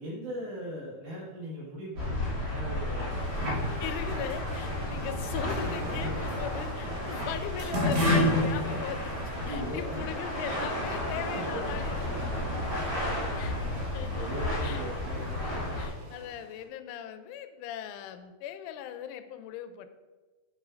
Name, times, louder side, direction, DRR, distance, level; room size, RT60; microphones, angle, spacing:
voice 1, 0.0-3.4 5.8-6.1 8.2-8.4 9.2-10.1 11.3-11.8 12.1-12.2 14.1-15.4, equal, 55° right, -7 dB, 2.6 m, -39 dB
sound 1, 1.9-15.9, left 1 dB, 35° right, 2.3 m, -31 dB
sound 2, 3.1-16.6, right 2 dB, 90° right, 1.7 m, -47 dB
voice 2, 3.5-9.0 9.5-12.0 13.4-14.9 15.2-19.9, left 10 dB, 90° left, 9 dB, 3.0 m, -39 dB
sound 3, 5.2-7.2 7.6-9.5, equal, 70° right, 4.9 m, -38 dB
8.2 x 8.2 x 2.5 m, 1.3 s
omnidirectional pair, 5.4 m